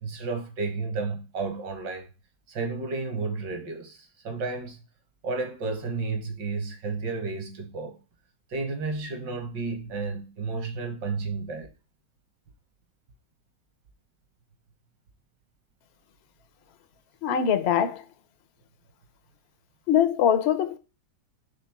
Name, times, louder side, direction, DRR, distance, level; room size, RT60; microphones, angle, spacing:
voice 1, 0.0-2.1 2.5-4.8 5.2-8.0 8.5-11.7, right 4 dB, 70° right, 1.9 m, -32 dB
voice 2, 17.2-18.0 19.9-20.8, left 9 dB, 65° left, 0.6 m, -22 dB
5.1 x 3.7 x 5.8 m
omnidirectional pair, 2.1 m